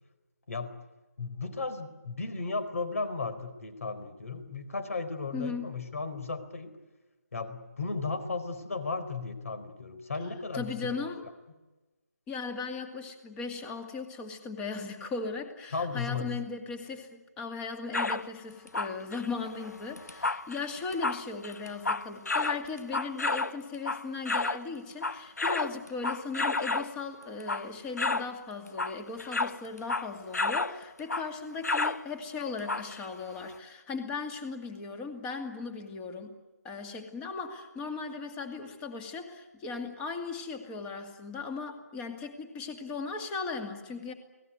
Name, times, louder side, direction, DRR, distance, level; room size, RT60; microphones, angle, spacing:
voice 1, 1.2-6.7 7.3-11.0 15.7-16.3, left 4 dB, 55° left, 12 dB, 4.4 m, -35 dB
voice 2, 5.3-5.7 10.5-11.3 12.3-36.3 36.6-44.1, left 4 dB, 10° left, 6 dB, 2.3 m, -37 dB
sound 1, 17.9-18.3 18.7-24.6 24.9-26.9 27.4-27.7 28.0-28.3 28.7-30.8 31.1-31.3 31.6-32.0 32.7-33.1 33.5-33.6, left 3 dB, 75° left, 1.1 m, -31 dB
29.0 x 19.0 x 9.8 m, 1.1 s
figure-of-eight pair, 155°, 9 cm